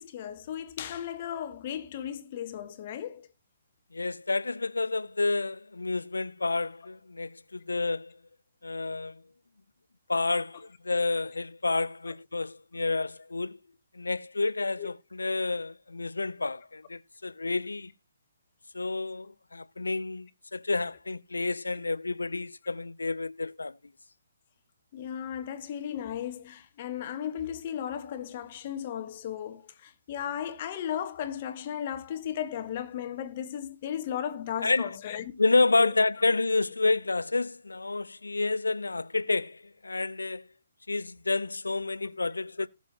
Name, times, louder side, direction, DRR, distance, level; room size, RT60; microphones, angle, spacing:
voice 1, 0.0-3.3 12.1-12.2 12.8-12.9 14.8-14.9 24.9-35.3 35.8-35.9, left 9 dB, 40° left, 1.5 m, -35 dB
voice 2, 3.9-8.1 8.6-9.2 10.1-13.6 13.9-17.9 18.7-23.8 34.6-34.9 35.4-40.4 40.9-42.7, left 3 dB, 75° left, 0.5 m, -29 dB
18.5 x 7.3 x 2.9 m
figure-of-eight pair, 135°, 0 cm